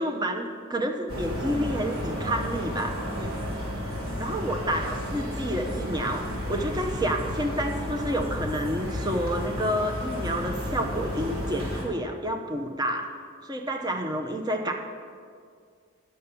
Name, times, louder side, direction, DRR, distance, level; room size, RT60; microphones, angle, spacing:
voice 1, 0.0-3.3 4.2-13.1 13.4-14.7, equal, 20° right, 4 dB, 0.7 m, -29 dB
sound 1, 1.1-11.8, equal, 85° right, 2.4 m, -32 dB
8.4 x 6.7 x 6.9 m, 2.2 s
head